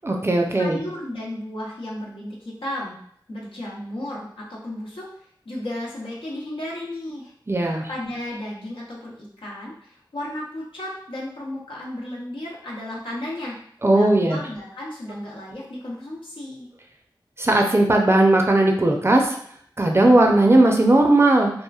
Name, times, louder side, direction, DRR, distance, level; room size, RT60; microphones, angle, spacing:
voice 1, 0.0-0.8 7.5-7.9 13.8-14.4 17.4-19.4 19.8-21.5, right 2 dB, 30° right, 1 dB, 0.5 m, -17 dB
voice 2, 0.6-3.0 3.3-5.1 5.4-7.3 7.9-13.6 13.9-16.7, left 1 dB, 85° left, -5 dB, 0.8 m, -34 dB
2.9 x 2.4 x 2.3 m, 0.64 s
wide cardioid pair, 45°, 9 cm